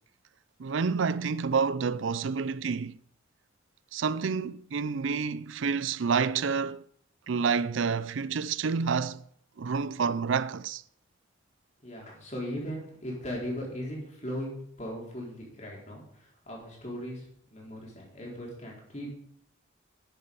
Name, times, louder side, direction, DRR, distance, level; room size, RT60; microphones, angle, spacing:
voice 1, 0.6-2.9 3.9-6.8 7.3-9.2 9.6-10.8, right 5 dB, 75° right, 0.5 m, -28 dB
voice 2, 11.8-19.1, equal, 35° left, 4.5 m, -38 dB
11.5 x 10.5 x 5.6 m
head